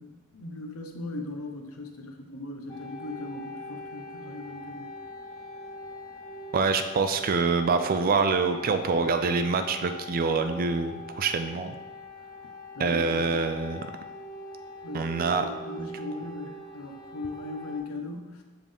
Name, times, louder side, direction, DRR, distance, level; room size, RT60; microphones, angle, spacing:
voice 1, 0.0-4.9 12.7-13.5 14.8-18.4, left 2 dB, 70° left, 3 dB, 0.8 m, -39 dB
sound 1, 2.7-17.8, left 1 dB, 20° left, 0.8 m, -42 dB
voice 2, 6.5-11.8 12.8-13.8 14.9-15.5 15.8-15.9, right 4 dB, 40° right, 8 dB, 0.4 m, -25 dB
7.4 x 3.6 x 3.5 m, 1.2 s
head